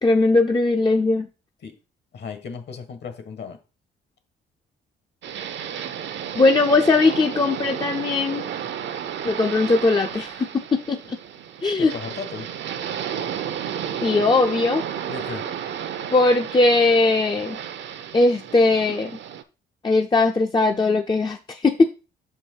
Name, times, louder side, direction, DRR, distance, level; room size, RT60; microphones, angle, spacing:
voice 1, 0.0-1.3 6.4-8.4 9.2-11.2 11.6-11.9 14.0-14.8 16.1-17.6 18.1-19.1 19.8-21.9, left 3 dB, 20° left, 4 dB, 0.5 m, -19 dB
voice 2, 2.1-3.6 11.8-12.5 15.1-15.4, left 5 dB, 60° left, 9 dB, 1.5 m, -35 dB
sound 1, 5.2-19.4, right 9 dB, 65° right, 0.7 m, -32 dB
6.2 x 4.7 x 4.5 m, 0.31 s
cardioid pair, 90°, 20 cm